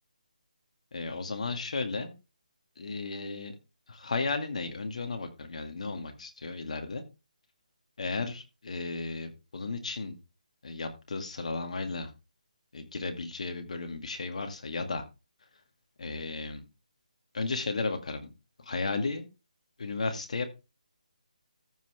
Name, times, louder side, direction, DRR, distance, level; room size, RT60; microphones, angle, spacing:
voice 1, 0.9-2.1 2.8-3.5 3.9-7.0 8.0-10.2 10.6-12.1 12.7-15.0 16.0-16.6 17.3-18.3 18.6-19.3 19.8-20.4, left 3 dB, 60° left, 6 dB, 2.2 m, -34 dB
14.0 x 5.8 x 3.5 m, 0.28 s
figure-of-eight pair, 160°, 4 cm